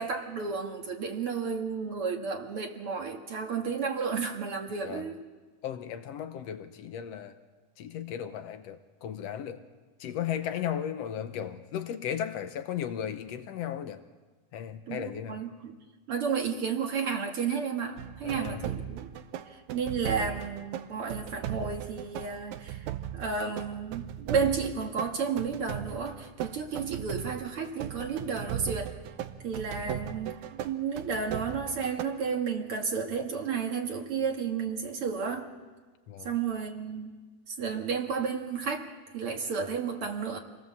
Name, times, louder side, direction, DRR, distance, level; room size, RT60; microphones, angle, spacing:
voice 1, 0.0-5.2 14.9-15.8 16.1-19.1 19.5-28.9 29.4-35.5 36.2-37.1 37.5-40.4, right 5 dB, 55° right, 2 dB, 2.3 m, -32 dB
voice 2, 5.6-7.4 7.8-9.6 10.0-14.0 14.5-15.4 18.2-18.7 29.8-30.1 36.1-36.3, left 9 dB, 70° left, 9 dB, 1.9 m, -36 dB
sound 1, 18.0-32.0, right 10 dB, 80° right, 2.2 m, -38 dB
26.5 x 18.5 x 7.3 m, 1.4 s
omnidirectional pair, 3.3 m